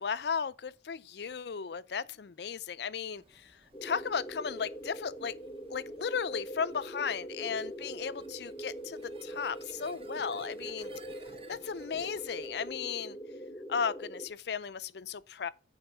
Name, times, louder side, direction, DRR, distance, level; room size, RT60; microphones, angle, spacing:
voice 1, 0.0-3.5 3.8-5.4 5.7-10.9 11.5-13.2 13.7-15.5, left 6 dB, 65° left, 0.5 m, -35 dB
sound 1, 3.1-13.0, right 3 dB, 30° right, 0.9 m, -58 dB
sound 2, 3.7-14.3, right 1 dB, 20° left, 0.8 m, -43 dB
8.8 x 4.0 x 6.7 m
head